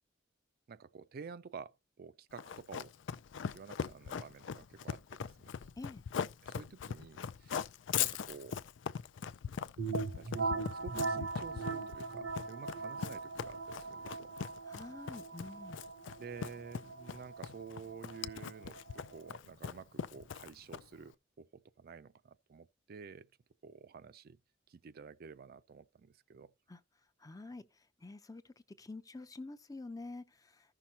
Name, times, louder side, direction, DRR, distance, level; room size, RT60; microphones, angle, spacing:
voice 1, 0.7-2.9 3.5-5.5 6.4-7.7 7.9-8.6 10.2-10.5 10.8-14.4 16.2-23.3 23.6-24.4 24.7-26.5, right 5 dB, 50° right, 0.4 m, -51 dB
Run, 2.4-21.0, left 7 dB, 70° left, 0.4 m, -40 dB
sound 1, 9.8-19.3, right 4 dB, 80° right, 0.8 m, -40 dB
voice 2, 14.7-15.8 26.7-26.8 27.2-27.6 28.0-28.4 28.8-30.2, left 2 dB, 20° left, 0.5 m, -47 dB
14.5 x 5.8 x 2.8 m
head